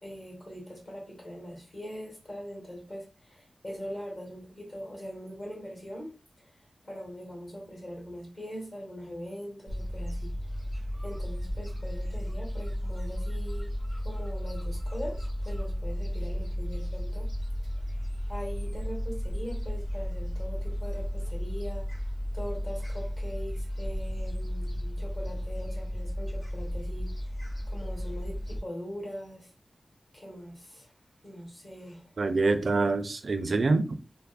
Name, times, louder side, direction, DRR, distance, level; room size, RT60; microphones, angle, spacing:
voice 1, 0.0-6.5 6.8-10.3 11.0-13.8 14.0-17.3 17.6-17.7 18.3-22.1 22.3-29.5 30.1-30.9 31.2-32.1 32.4-32.5, equal, 50° left, 1.3 m, -42 dB
Gull seagull, 9.7-28.6, equal, 80° left, 1.2 m, -33 dB
voice 2, 32.2-34.0, right 3 dB, 65° right, 0.4 m, -26 dB
3.3 x 2.0 x 2.2 m
wide cardioid pair, 60°, 0 cm